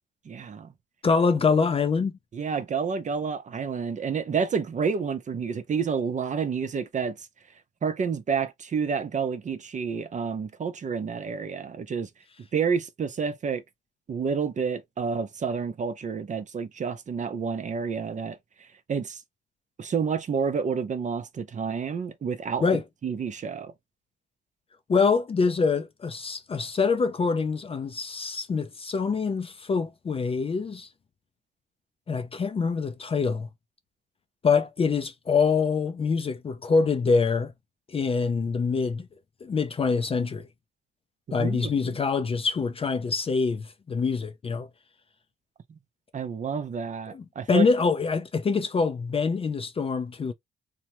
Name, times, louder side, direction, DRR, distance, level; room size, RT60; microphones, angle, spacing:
voice 1, 0.3-0.7 2.3-7.2 7.8-12.1 12.5-13.6 14.1-18.4 18.9-19.2 19.8-22.6 23.0-23.7 41.4-41.7 46.1-47.7, right 6 dB, 40° right, 0.6 m, -29 dB
voice 2, 1.0-2.1 22.6-22.8 24.9-30.9 32.1-33.5 34.4-37.5 37.9-39.1 39.4-40.5 41.3-44.7 47.1-50.3, left 5 dB, 30° left, 0.4 m, -25 dB
2.9 x 2.1 x 2.9 m
cardioid pair, 90°, 20 cm